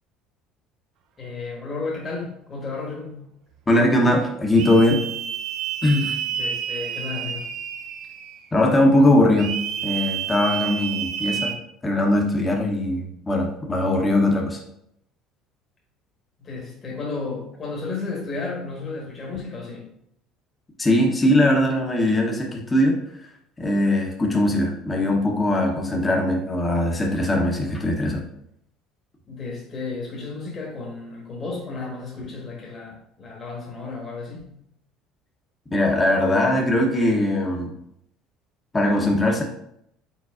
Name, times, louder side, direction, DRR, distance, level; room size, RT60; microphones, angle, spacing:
voice 1, 1.2-3.3 6.3-7.5 16.4-19.9 29.3-34.6, left 3 dB, 35° left, -2 dB, 1.4 m, -33 dB
voice 2, 3.7-5.0 5.8-6.2 8.5-9.5 9.8-11.5 11.8-14.6 20.8-23.0 23.6-28.2 35.7-37.7 38.7-39.4, left 1 dB, 20° left, 0 dB, 1.0 m, -20 dB
sound 1, 4.6-8.4 9.4-11.6, right 8 dB, 60° right, 0.5 m, -29 dB
4.9 x 3.9 x 2.5 m, 0.74 s
hypercardioid pair, 75°, 0 cm